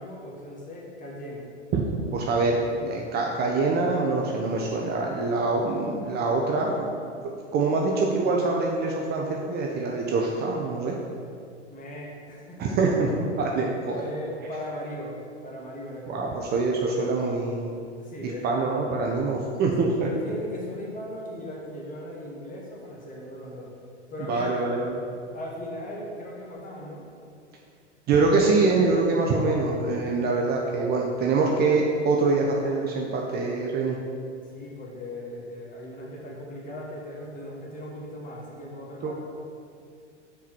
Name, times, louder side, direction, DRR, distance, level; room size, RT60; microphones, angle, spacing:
voice 1, 0.0-1.5 11.7-12.8 13.9-16.4 18.0-18.5 20.0-23.7 24.1-24.6 25.3-27.1 34.5-39.1, left 1 dB, 20° left, -3 dB, 1.6 m, -38 dB
voice 2, 2.1-6.9 7.2-10.9 12.6-14.0 16.1-17.8 18.2-20.1 24.3-25.0 28.1-34.0 39.0-39.1, right 3 dB, 25° right, -1 dB, 0.7 m, -25 dB
5.6 x 4.7 x 5.9 m, 2.3 s
figure-of-eight pair, 95°, 36 cm